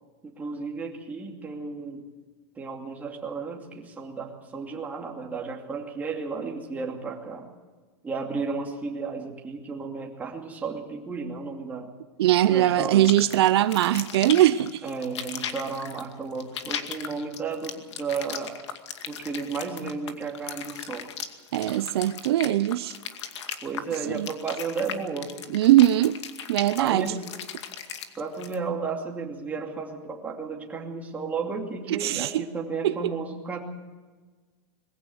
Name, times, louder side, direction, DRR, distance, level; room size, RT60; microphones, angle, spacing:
voice 1, 0.2-2.1 2.6-7.5 8.0-11.9 12.5-13.2 14.8-18.6 19.1-21.1 23.6-25.4 26.8-27.3 28.2-33.6, right 4 dB, 10° right, 0 dB, 2.6 m, -33 dB
voice 2, 12.2-14.8 21.5-22.9 24.1-24.3 25.5-26.2 26.5-27.1 31.9-32.4 32.8-32.9, right 13 dB, 65° right, 13 dB, 0.7 m, -21 dB
sound 1, 13.0-28.6, left 8 dB, 85° left, 2.3 m, -37 dB
22.0 x 15.5 x 8.0 m, 1.4 s
supercardioid pair, 170°, 14 cm